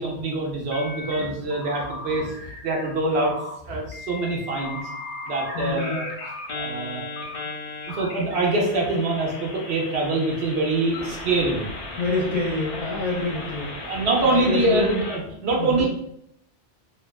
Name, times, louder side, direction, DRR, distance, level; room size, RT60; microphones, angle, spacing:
voice 1, 0.0-3.3 3.7-4.8 5.3-6.1 6.5-7.0 7.9-11.7 13.8-15.9, right 2 dB, 70° right, -1 dB, 0.9 m, -24 dB
sound 1, 0.7-1.2 1.5-2.9 3.2-3.5 3.9-15.2, left 2 dB, 85° left, 0.9 m, -36 dB
voice 2, 5.5-6.0 12.0-15.0 15.6-15.9, left 3 dB, ahead, -4 dB, 0.5 m, -27 dB
2.8 x 2.2 x 2.3 m, 0.73 s
omnidirectional pair, 1.1 m